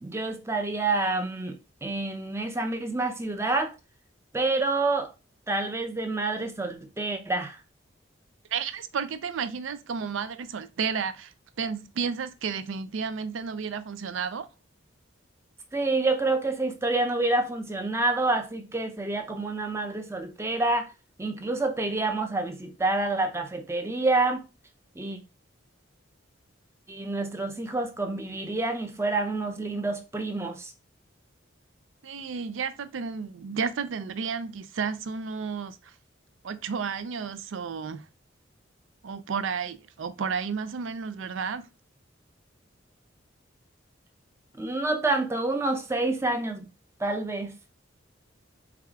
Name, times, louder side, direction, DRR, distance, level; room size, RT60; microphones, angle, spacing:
voice 1, 0.0-3.7 4.3-5.1 5.5-7.6 15.7-20.9 21.2-24.4 25.0-25.2 26.9-30.7 44.6-46.7 47.0-47.5, right 2 dB, 15° right, 0.5 m, -28 dB
voice 2, 8.5-14.5 32.0-35.9 36.4-38.0 39.0-41.7, right 6 dB, 75° right, 0.4 m, -32 dB
4.7 x 2.3 x 3.6 m
head